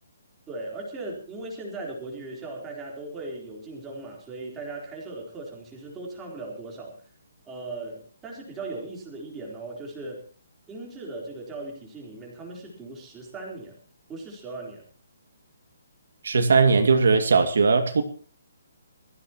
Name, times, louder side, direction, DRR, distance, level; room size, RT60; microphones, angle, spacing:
voice 1, 0.5-7.1 7.5-10.2 10.7-13.8 14.1-14.8, right 2 dB, 10° right, -2 dB, 4.0 m, -38 dB
voice 2, 16.2-18.0, right 4 dB, 65° right, 7 dB, 2.3 m, -19 dB
21.5 x 15.5 x 3.1 m, 0.40 s
hypercardioid pair, 180°, 0 cm